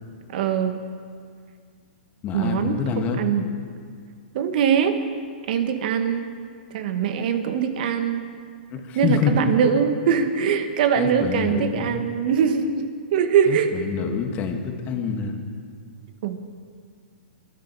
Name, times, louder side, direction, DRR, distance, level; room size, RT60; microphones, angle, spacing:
voice 1, 0.3-0.8 2.3-3.4 4.3-5.0 5.5-6.3 6.7-8.2 8.9-13.7 16.2-16.4, right 7 dB, 55° right, 8 dB, 1.3 m, -22 dB
voice 2, 2.2-3.2 8.7-9.5 11.0-11.9 13.5-15.4, left 6 dB, 30° left, 4 dB, 1.8 m, -26 dB
22.0 x 12.5 x 4.8 m, 2.1 s
hypercardioid pair, 140°, 6 cm